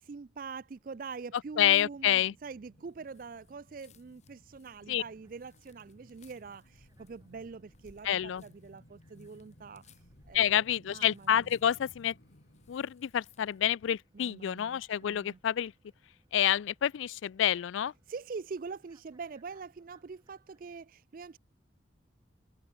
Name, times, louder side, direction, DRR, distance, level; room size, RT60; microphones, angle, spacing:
voice 1, 0.0-11.5 14.1-15.4 18.1-21.4, right 4 dB, 45° right, 0.4 m, -44 dB
sound 1, 1.3-14.5 14.8-14.9, left 1 dB, 65° left, 3.7 m, -61 dB
voice 2, 1.6-2.3 4.9-5.0 8.0-8.4 10.3-12.1 12.7-15.7 16.3-17.9, left 10 dB, 85° left, 0.4 m, -28 dB
sound 2, 3.0-13.7, left 4 dB, 35° left, 6.1 m, -66 dB
sound 3, 4.5-20.8, right 1 dB, 20° right, 4.8 m, -71 dB
head